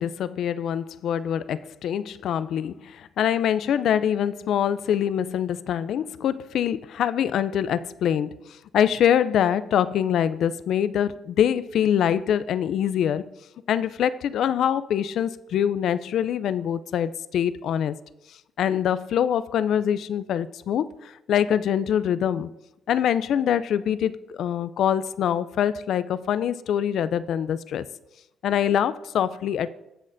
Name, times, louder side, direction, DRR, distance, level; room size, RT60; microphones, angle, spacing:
voice 1, 0.0-8.4 8.7-13.3 13.7-17.9 18.6-22.5 22.9-27.8 28.4-29.7, left 9 dB, 70° left, 15 dB, 0.4 m, -24 dB
19.0 x 6.3 x 2.6 m, 0.94 s
cardioid pair, 90°, 0 cm